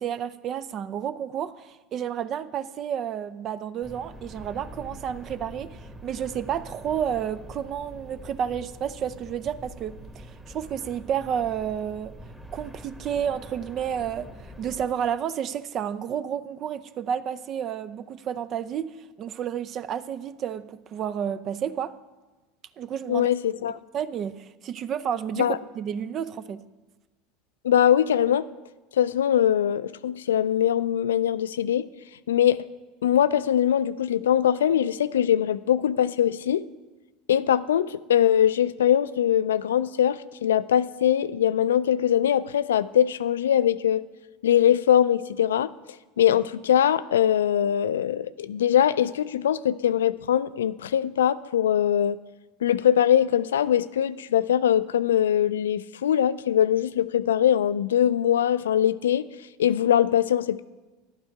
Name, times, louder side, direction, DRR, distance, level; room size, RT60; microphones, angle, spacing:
voice 1, 0.0-12.1 12.5-14.3 14.6-18.9 19.2-21.9 22.8-23.3 23.9-26.6, right 8 dB, 45° right, 14 dB, 0.5 m, -31 dB
sound 1, 3.8-14.9, equal, 10° right, 1.5 m, -44 dB
voice 2, 23.1-23.7 25.4-25.6 27.6-28.5 29.0-31.9 32.3-32.6 33.0-36.7 37.3-44.0 44.4-45.7 46.2-52.2 52.6-59.3 59.6-60.6, left 10 dB, 85° left, 16 dB, 0.3 m, -22 dB
11.5 x 8.8 x 4.6 m, 1.2 s
hypercardioid pair, 85°, 0 cm